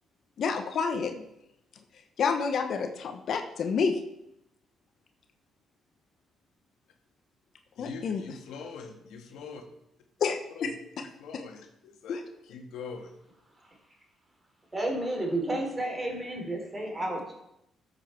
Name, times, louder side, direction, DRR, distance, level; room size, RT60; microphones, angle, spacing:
voice 1, 0.4-1.2 2.2-4.0 7.8-8.2 10.2-10.7 12.1-12.2, left 5 dB, 60° left, 6 dB, 1.2 m, -29 dB
voice 2, 7.7-9.6 10.5-10.7 11.2-13.1, left 5 dB, 85° left, 3 dB, 1.7 m, -43 dB
voice 3, 14.7-17.4, right 1 dB, 20° right, 1 dB, 3.7 m, -31 dB
13.5 x 7.3 x 4.6 m, 0.81 s
cardioid pair, 90°, 0 cm